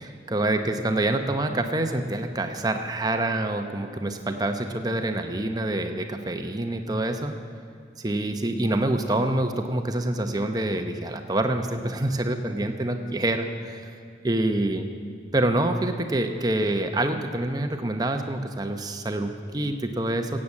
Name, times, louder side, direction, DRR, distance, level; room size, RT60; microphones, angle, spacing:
voice 1, 0.0-7.3 8.0-13.9 14.2-14.9 15.3-20.4, right 1 dB, 20° right, 6 dB, 0.8 m, -26 dB
16.0 x 8.6 x 7.4 m, 2.3 s
head